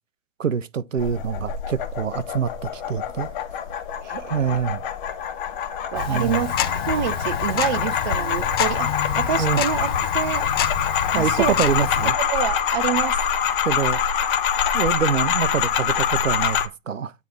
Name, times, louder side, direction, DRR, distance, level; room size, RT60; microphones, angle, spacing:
voice 1, 0.4-3.3 4.3-4.8 6.1-6.4 9.4-9.6 11.1-12.1 13.6-14.0 14.7-17.1, right 7 dB, 75° right, 0.7 m, -25 dB
sound 1, 1.0-16.7, left 8 dB, 40° left, 1.4 m, -25 dB
voice 2, 4.0-4.6 5.9-10.5 11.2-11.6 12.0-13.2, right 10 dB, 35° right, 0.5 m, -27 dB
Tick-tock, 5.9-12.1, left 8 dB, 20° left, 0.4 m, -28 dB
9.2 x 3.1 x 6.2 m
figure-of-eight pair, 110°, 39 cm